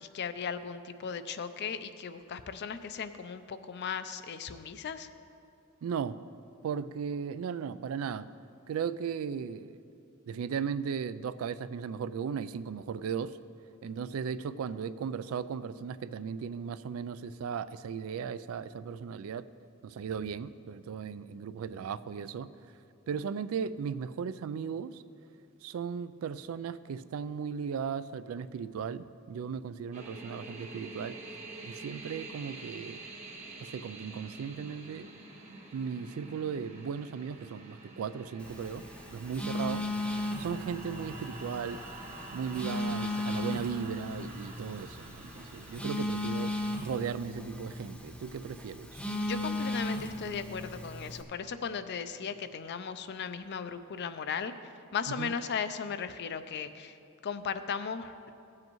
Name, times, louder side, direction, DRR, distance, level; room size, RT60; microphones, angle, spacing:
voice 1, 0.0-5.1 49.2-54.5 54.9-56.9 57.2-58.3, left 6 dB, 55° left, 11 dB, 0.4 m, -37 dB
voice 2, 5.8-6.2 6.6-8.3 8.7-9.8 10.3-13.4 13.8-19.5 19.8-22.5 23.1-25.0 25.6-31.2 31.6-33.0 33.6-35.1 35.7-38.9 39.1-39.8 40.4-41.8 42.3-46.5 46.8-49.0 55.1-55.3, right 6 dB, 75° right, 15 dB, 0.3 m, -36 dB
sound 1, 29.9-47.0, right 2 dB, 35° right, 1.2 m, -47 dB
Telephone, 38.4-51.2, left 1 dB, 5° left, 0.7 m, -36 dB
16.0 x 7.6 x 3.1 m, 2.5 s
head